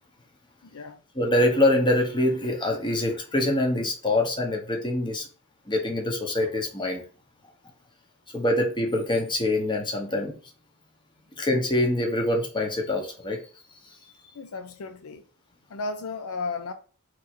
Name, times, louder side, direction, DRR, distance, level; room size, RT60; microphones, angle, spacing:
voice 1, 0.6-1.0 14.3-15.3 15.7-16.7, left 3 dB, 70° left, 0.5 m, -34 dB
voice 2, 1.1-5.3 5.7-7.0 8.3-10.4 11.4-13.4, left 1 dB, 20° left, 1.0 m, -24 dB
3.5 x 3.2 x 4.6 m
head